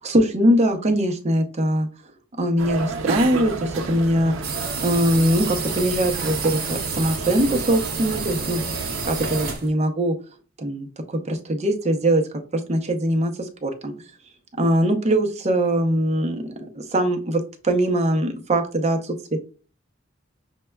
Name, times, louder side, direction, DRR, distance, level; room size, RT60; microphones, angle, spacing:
voice 1, 0.0-1.9 2.4-4.3 4.8-8.7 9.0-10.2 10.6-12.2 12.5-13.9 14.6-19.4, right 1 dB, 35° right, 4 dB, 0.6 m, -22 dB
sound 1, 2.6-9.6, right 3 dB, 75° right, 0.5 m, -31 dB
sound 2, 4.4-9.7, right 5 dB, 50° right, 1.0 m, -31 dB
6.4 x 2.2 x 2.2 m, 0.37 s
head